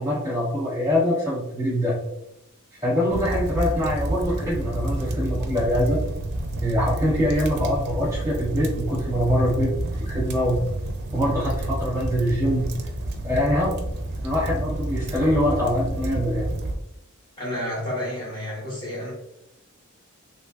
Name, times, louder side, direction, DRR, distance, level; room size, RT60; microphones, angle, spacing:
voice 1, 0.0-1.9 2.8-6.0 6.6-9.7 10.0-10.6 11.1-12.7 13.2-13.8 14.2-16.5, equal, 15° right, -7 dB, 1.0 m, -24 dB
sound 1, 3.1-16.8, right 1 dB, 50° right, 0.4 m, -29 dB
voice 2, 17.4-19.1, left 1 dB, 20° left, -8 dB, 1.5 m, -30 dB
3.1 x 2.9 x 2.4 m, 0.84 s
head